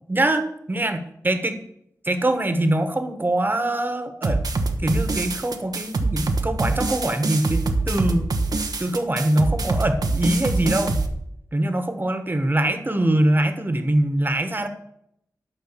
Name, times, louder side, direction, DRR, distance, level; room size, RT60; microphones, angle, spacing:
voice 1, 0.1-1.6 2.0-4.4 4.8-8.4 8.8-11.0 11.5-14.7, right 1 dB, 30° right, 8 dB, 1.2 m, -23 dB
sound 1, 4.2-11.1, right 3 dB, 85° right, 1.0 m, -24 dB
10.0 x 5.7 x 6.7 m, 0.76 s
wide cardioid pair, 60°, 7 cm